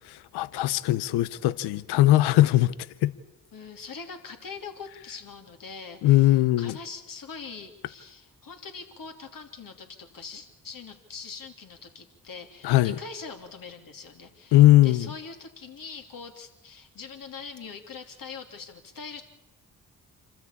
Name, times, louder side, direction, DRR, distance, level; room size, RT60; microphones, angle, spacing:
voice 1, 0.0-2.7 3.0-3.1 6.0-6.8 12.6-13.0 14.5-15.1, left 15 dB, 75° left, 0.7 m, -20 dB
voice 2, 3.5-19.2, left 5 dB, 55° left, 3.1 m, -42 dB
27.0 x 13.0 x 8.6 m
hypercardioid pair, 45°, 40 cm